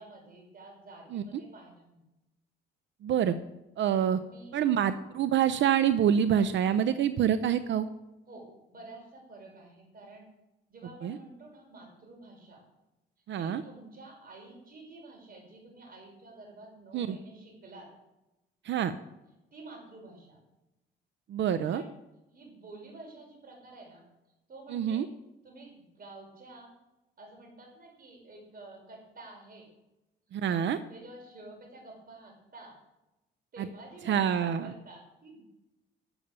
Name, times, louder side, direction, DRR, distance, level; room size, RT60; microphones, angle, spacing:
voice 1, 0.0-2.0 3.8-4.6 8.3-10.3 10.7-12.6 13.4-17.9 19.5-20.4 21.7-21.9 22.3-24.0 24.5-25.1 25.4-26.7 27.2-29.7 30.4-32.8 33.5-35.4, right 2 dB, 50° right, 1 dB, 5.4 m, -50 dB
voice 2, 3.0-3.3 3.8-4.2 4.5-7.9 11.0-11.2 13.3-13.6 16.9-17.2 18.6-18.9 21.3-21.8 24.7-25.1 30.3-30.8 33.6-33.7 34.1-34.7, right 9 dB, 70° right, 12 dB, 0.7 m, -26 dB
12.0 x 7.1 x 6.7 m, 0.96 s
cardioid pair, 90°, 20 cm